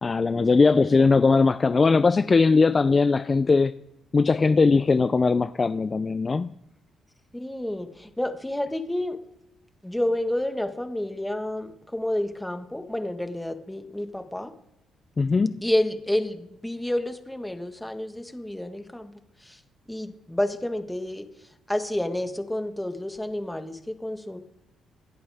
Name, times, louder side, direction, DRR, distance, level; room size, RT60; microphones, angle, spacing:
voice 1, 0.0-3.7 4.1-6.5 15.2-15.6, left 4 dB, 30° left, 0.4 m, -20 dB
voice 2, 7.3-9.2 9.8-14.5 15.6-19.1 19.4-19.6 19.9-21.3 21.7-24.4, left 1 dB, 5° left, 1.5 m, -29 dB
26.5 x 11.0 x 3.5 m
cardioid pair, 90°, 0 cm